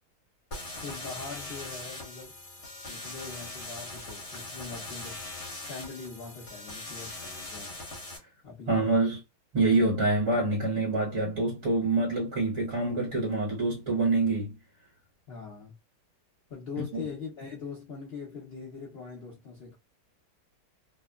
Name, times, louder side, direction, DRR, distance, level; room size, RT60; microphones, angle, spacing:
sound 1, 0.5-8.2, left 2 dB, 45° left, 1.1 m, -41 dB
voice 1, 0.8-2.3 2.9-5.2 5.6-7.7 8.4-9.0 15.3-15.7 16.5-19.8, left 5 dB, 80° left, 0.5 m, -42 dB
voice 2, 8.7-9.2 9.5-14.5 16.9-17.0, right 2 dB, 50° right, 1.4 m, -26 dB
2.9 x 2.1 x 2.2 m
omnidirectional pair, 1.9 m